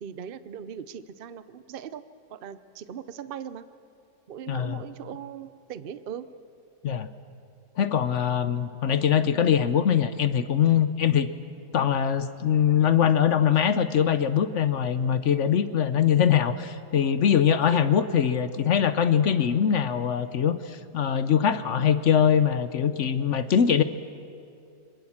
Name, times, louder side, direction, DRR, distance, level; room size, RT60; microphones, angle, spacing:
voice 1, 0.0-2.0 2.3-3.6 4.3-6.3 17.7-17.9, right 8 dB, 50° right, 13 dB, 0.6 m, -39 dB
voice 2, 4.5-4.8 6.8-7.1 7.8-11.3 11.7-23.8, left 8 dB, 55° left, 12 dB, 0.9 m, -22 dB
27.0 x 20.5 x 7.3 m, 2.5 s
omnidirectional pair, 1.9 m